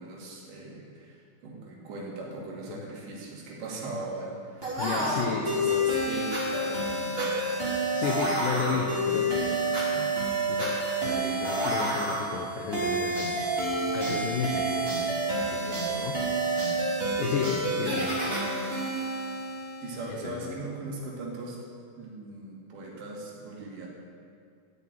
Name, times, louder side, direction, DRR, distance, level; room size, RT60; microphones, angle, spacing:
voice 1, 0.0-7.5 7.9-10.2 19.8-21.6 22.0-23.9, right 2 dB, 75° right, -3 dB, 4.6 m, -39 dB
sound 1, 4.6-20.1, right 1 dB, 15° right, 2.7 m, -29 dB
voice 2, 4.8-5.5 7.9-9.5 10.5-13.3 13.9-15.1 15.4-16.8 17.2-18.3 20.1-20.6, left 6 dB, 80° left, 1 dB, 1.9 m, -33 dB
14.0 x 6.9 x 9.3 m, 2.3 s
omnidirectional pair, 5.1 m